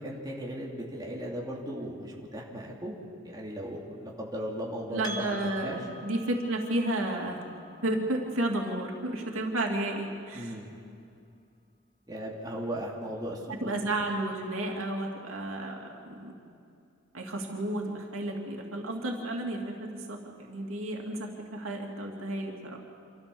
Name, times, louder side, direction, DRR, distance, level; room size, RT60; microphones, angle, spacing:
voice 1, 0.0-2.9 3.2-5.0 5.3-5.8 10.3-10.7 12.1-13.7, equal, 20° right, -3 dB, 2.7 m, -37 dB
voice 2, 4.9-7.4 7.8-10.5 13.6-16.3 17.1-20.2 20.5-22.8, right 1 dB, 90° right, 0 dB, 2.8 m, -32 dB
Percussion, 5.0-9.9, equal, 20° left, 1.4 m, -47 dB
27.0 x 14.0 x 7.1 m, 2.4 s
head